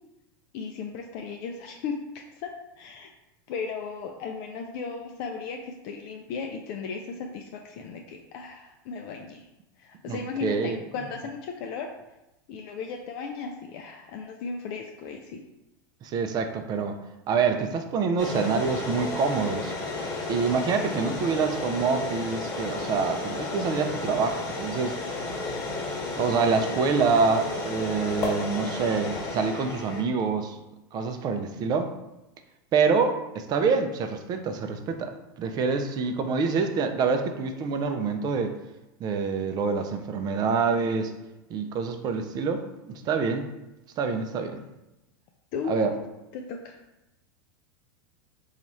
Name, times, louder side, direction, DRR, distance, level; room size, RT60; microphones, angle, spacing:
voice 1, 0.5-2.0 2.3-3.1 3.5-9.5 9.8-11.9 12.5-15.4 45.5-46.0 46.3-46.8, left 5 dB, 50° left, 2 dB, 0.4 m, -36 dB
voice 2, 10.1-10.8 16.0-17.0 17.3-19.7 20.3-25.0 26.2-30.6 30.9-31.9 32.7-38.6 39.0-41.1 41.5-43.5 44.0-44.6 45.7-45.9, right 5 dB, 35° right, 7 dB, 0.4 m, -26 dB
sound 1, 18.2-30.0, left 2 dB, 30° left, 1.3 m, -32 dB
3.0 x 2.4 x 4.0 m, 0.96 s
hypercardioid pair, 100°, 12 cm